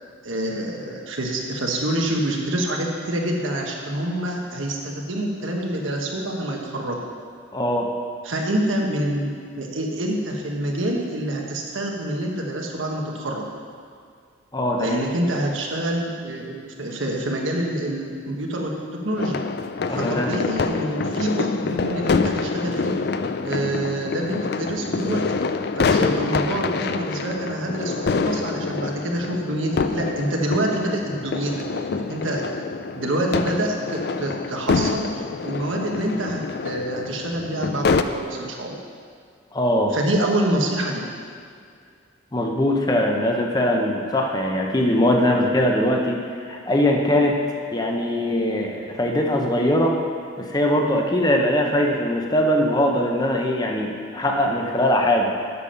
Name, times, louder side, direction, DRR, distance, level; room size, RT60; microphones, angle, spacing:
voice 1, 0.2-7.0 8.2-13.4 14.8-18.7 19.0-19.4 19.9-22.9 23.4-25.2 25.8-32.4 32.9-38.8 39.9-41.0, right 1 dB, 80° right, 0 dB, 1.3 m, -26 dB
voice 2, 7.5-7.9 14.5-15.0 19.9-20.3 39.5-40.0 42.3-47.4 47.7-50.0 50.4-55.3, left 1 dB, 20° left, 1 dB, 0.7 m, -21 dB
sound 1, 19.2-38.0, left 4 dB, 50° left, 0.4 m, -26 dB
8.4 x 7.0 x 5.6 m, 2.2 s
head